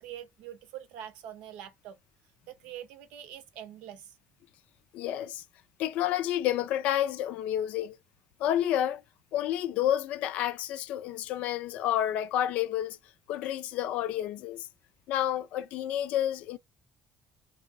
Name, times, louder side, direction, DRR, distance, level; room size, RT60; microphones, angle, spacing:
voice 1, 0.0-2.0 2.5-4.2, right 10 dB, 90° right, 0.6 m, -44 dB
voice 2, 4.9-5.4 5.8-8.0 8.4-9.0 9.3-13.0 13.3-14.7 15.1-16.6, left 11 dB, 75° left, 0.4 m, -29 dB
3.0 x 2.8 x 2.6 m
cardioid pair, 135°, 2 cm